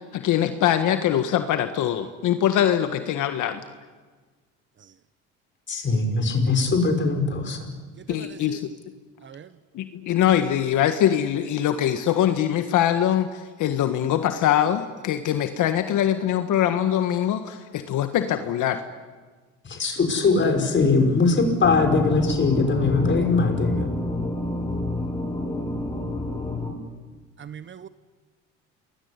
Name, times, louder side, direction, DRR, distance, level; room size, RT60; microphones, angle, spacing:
voice 1, 0.1-3.6 8.1-8.6 9.7-18.8 24.7-24.8, left 10 dB, 60° left, 1.7 m, -23 dB
voice 2, 5.7-7.6 19.7-23.9, left 3 dB, 35° left, 5.6 m, -21 dB
voice 3, 8.0-8.6 9.2-9.5 27.4-27.9, right 8 dB, 35° right, 1.1 m, -41 dB
sound 1, 21.6-26.7, left 2 dB, 10° left, 6.4 m, -28 dB
28.0 x 21.0 x 9.8 m
supercardioid pair, 90°, 35 cm